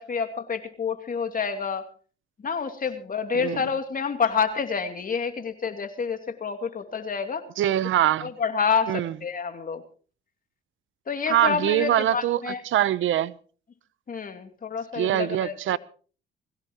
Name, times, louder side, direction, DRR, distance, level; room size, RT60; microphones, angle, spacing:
voice 1, 0.0-1.8 2.4-7.4 8.2-9.8 11.1-12.6 14.1-15.8, left 6 dB, 40° left, 2.8 m, -28 dB
voice 2, 7.6-8.3 8.9-9.1 11.3-13.3 14.9-15.8, right 12 dB, 70° right, 0.8 m, -23 dB
21.5 x 16.0 x 3.0 m
cardioid pair, 85°, 21 cm